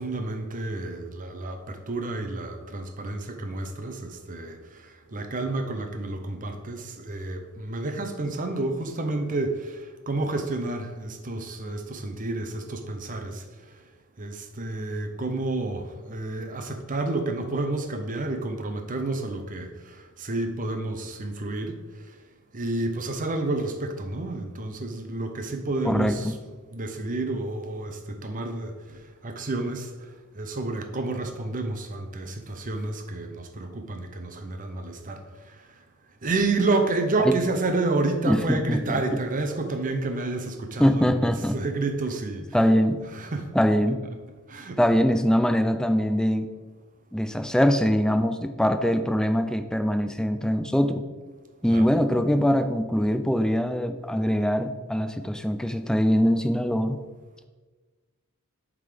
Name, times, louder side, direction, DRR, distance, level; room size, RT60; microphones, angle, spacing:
voice 1, 0.0-13.4 14.2-21.8 22.5-26.4 26.7-29.9 30.3-35.6 36.2-42.7 43.0-43.5 44.5-44.8 51.6-51.9, right 2 dB, 40° right, 6 dB, 0.7 m, -30 dB
voice 2, 25.8-26.4 37.2-37.4 38.3-39.0 40.8-41.6 42.5-43.0 43.5-44.0 44.8-46.5 47.1-51.0 51.6-57.0, equal, 5° left, 9 dB, 0.3 m, -23 dB
7.7 x 3.7 x 5.0 m, 1.3 s
head